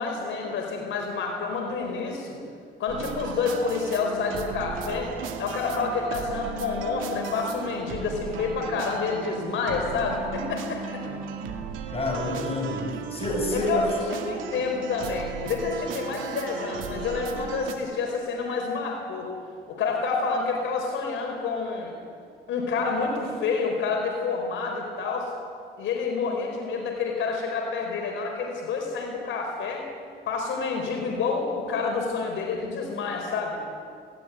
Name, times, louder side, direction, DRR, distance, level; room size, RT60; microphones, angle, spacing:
voice 1, 0.0-2.4 2.8-5.1 5.4-11.0 13.5-19.3 19.7-22.0 22.5-25.3 25.8-29.9 30.3-33.8, left 4 dB, 75° left, 1 dB, 4.5 m, -28 dB
sound 1, 2.9-17.7, right 6 dB, 90° right, 2.2 m, -36 dB
voice 2, 11.9-13.9, left 2 dB, 30° left, 0 dB, 7.1 m, -28 dB
20.5 x 17.5 x 9.4 m, 2.2 s
cardioid pair, 90°, 20 cm